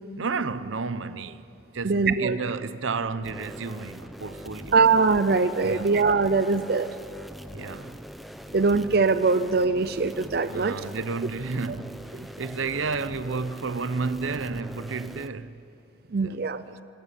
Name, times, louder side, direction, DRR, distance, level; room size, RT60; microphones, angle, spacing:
voice 1, 0.2-1.4 1.7-4.8 5.6-5.9 7.5-8.0 10.5-15.6 16.2-16.4 16.6-16.8, right 4 dB, 80° right, 0.8 m, -32 dB
voice 2, 1.8-2.4 4.7-6.9 8.5-10.8 12.2-12.3 16.1-16.6, right 4 dB, 50° right, 0.5 m, -22 dB
sound 1, 3.2-15.3, equal, ahead, 0.7 m, -42 dB
24.5 x 15.0 x 9.9 m
head